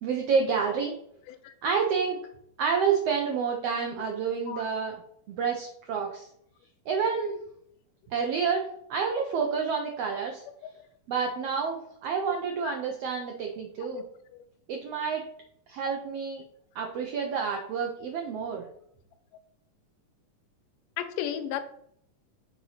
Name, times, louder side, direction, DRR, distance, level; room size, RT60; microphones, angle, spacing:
voice 1, 0.0-0.9 1.6-2.2 2.6-5.0 5.3-6.3 6.9-7.4 8.1-10.4 11.1-14.0 14.7-15.2 15.7-16.4 16.7-18.6, right 6 dB, 85° right, 2 dB, 1.3 m, -29 dB
voice 2, 21.0-21.6, left 10 dB, 90° left, 8 dB, 2.2 m, -34 dB
7.1 x 2.8 x 5.5 m, 0.69 s
omnidirectional pair, 3.7 m